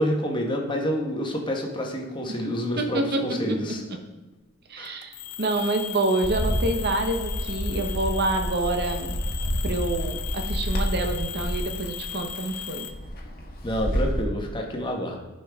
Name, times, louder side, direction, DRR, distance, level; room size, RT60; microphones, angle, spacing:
voice 1, 0.0-3.8 4.8-5.0 13.6-15.2, equal, 20° left, 1 dB, 1.0 m, -28 dB
voice 2, 2.8-3.4 4.7-5.1 5.4-9.2 9.6-12.9, right 2 dB, 45° right, 5 dB, 0.8 m, -27 dB
sound 1, 4.8-12.9, left 9 dB, 85° left, 0.6 m, -37 dB
Bird, 6.2-14.2, equal, 40° left, 1.3 m, -29 dB
11.5 x 5.4 x 3.5 m, 1.2 s
head